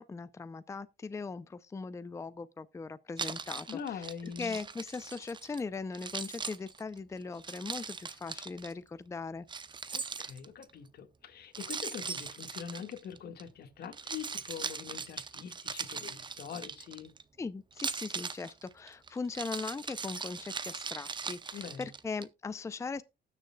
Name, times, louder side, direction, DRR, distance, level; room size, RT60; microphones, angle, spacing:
voice 1, 0.0-3.8 4.4-9.5 17.4-23.0, left 4 dB, 15° left, 0.5 m, -39 dB
Keys jangling, 3.2-5.6 5.9-8.7 9.5-10.7 11.5-13.4 13.8-17.2 17.7-22.2, right 5 dB, 25° right, 0.7 m, -40 dB
voice 2, 3.7-4.6 9.9-17.1 21.5-21.9, left 7 dB, 60° left, 1.8 m, -43 dB
19.5 x 6.5 x 2.3 m
cardioid pair, 115°, 19 cm